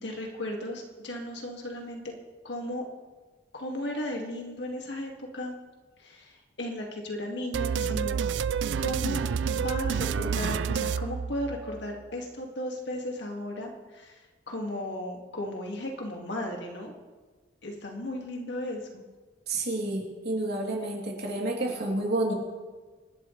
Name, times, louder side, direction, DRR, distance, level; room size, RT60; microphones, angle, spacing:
voice 1, 0.0-2.0 2.4-2.9 3.5-5.6 6.0-8.2 8.8-9.2 9.5-14.2 14.5-16.9 17.6-19.0, left 1 dB, 70° left, 1 dB, 2.2 m, -35 dB
sound 1, 7.5-11.8, right 6 dB, 85° right, 0.4 m, -29 dB
voice 2, 19.5-22.3, right 2 dB, 60° right, -2 dB, 3.2 m, -29 dB
25.5 x 11.5 x 3.3 m, 1.3 s
head